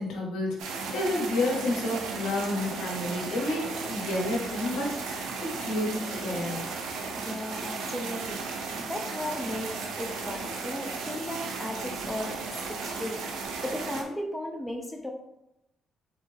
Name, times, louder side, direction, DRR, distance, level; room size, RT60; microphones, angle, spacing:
voice 1, 0.0-6.7, left 1 dB, 90° left, -1 dB, 1.1 m, -30 dB
sound 1, 0.6-14.0, right 4 dB, 90° right, 0.6 m, -35 dB
voice 2, 7.2-8.4 8.9-12.4 12.7-13.2 13.6-15.1, left 1 dB, 10° left, 2 dB, 0.6 m, -35 dB
4.3 x 3.6 x 2.8 m, 0.85 s
cardioid pair, 90°, 0 cm